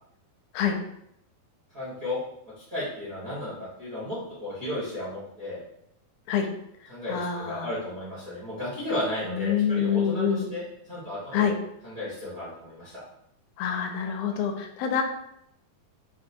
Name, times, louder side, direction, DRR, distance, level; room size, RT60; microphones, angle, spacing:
voice 1, 1.7-2.2 2.6-5.6 6.9-10.6 10.9-11.6 11.8-13.0, left 1 dB, 55° right, -10 dB, 0.9 m, -34 dB
voice 2, 7.1-7.7 9.3-10.5 11.3-11.5 13.6-15.0, left 7 dB, 80° left, 4 dB, 2.3 m, -26 dB
6.0 x 2.3 x 2.7 m, 0.76 s
omnidirectional pair, 4.5 m